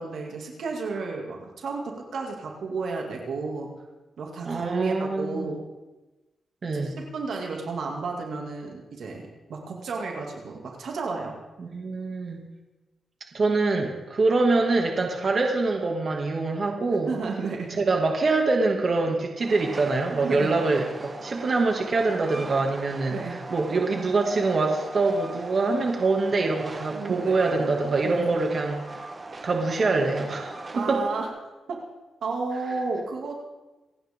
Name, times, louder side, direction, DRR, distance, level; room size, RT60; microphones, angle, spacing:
voice 1, 0.0-3.7 4.2-5.6 6.7-11.4 17.1-17.8 20.2-20.6 23.1-23.4 26.9-27.4 28.0-28.3 30.7-31.3 31.7-31.8 32.2-33.3, right 4 dB, 75° right, 1 dB, 2.4 m, -32 dB
voice 2, 4.4-5.5 6.6-6.9 11.6-12.5 13.3-17.1 17.7-23.1 23.5-28.8 29.4-31.0, right 3 dB, 50° right, 2 dB, 2.3 m, -24 dB
Train, 19.4-31.3, right 2 dB, 30° right, 1.2 m, -40 dB
27.5 x 9.4 x 3.7 m, 1.1 s
cardioid pair, 85°, 0 cm